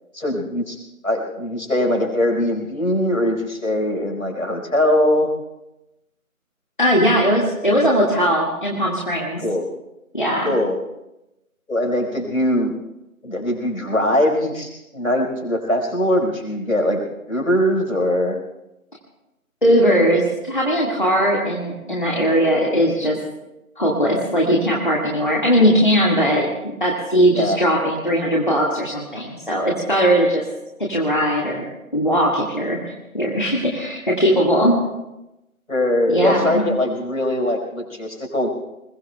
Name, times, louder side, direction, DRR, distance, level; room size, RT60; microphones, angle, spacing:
voice 1, 0.1-0.8 1.0-5.3 9.4-9.7 10.4-10.8 11.7-12.7 13.2-17.0 17.3-18.4 27.3-27.6 35.7-38.5, left 1 dB, 70° left, 3 dB, 4.6 m, -21 dB
voice 2, 6.8-9.4 10.1-10.5 19.6-23.2 23.8-30.4 30.8-31.6 31.9-34.8 36.1-36.6, equal, 35° left, -3 dB, 1.8 m, -19 dB
29.0 x 21.5 x 2.3 m, 0.94 s
figure-of-eight pair, 175°, 43 cm